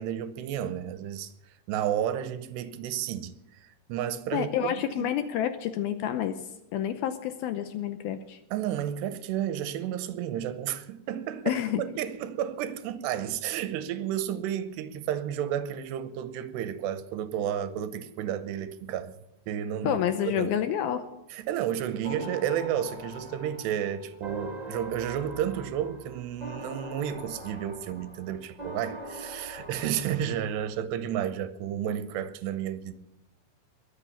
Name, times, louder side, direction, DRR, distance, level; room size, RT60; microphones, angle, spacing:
voice 1, 0.0-1.3 1.7-3.3 3.9-5.1 8.5-19.1 19.5-20.5 21.3-32.9, right 10 dB, 80° right, 2.9 m, -32 dB
voice 2, 4.3-6.4 6.7-8.4 11.5-11.8 19.8-21.1, left 10 dB, 75° left, 2.3 m, -29 dB
sound 1, 22.0-30.8, right 1 dB, 40° right, 0.5 m, -42 dB
22.0 x 8.4 x 7.1 m
omnidirectional pair, 4.9 m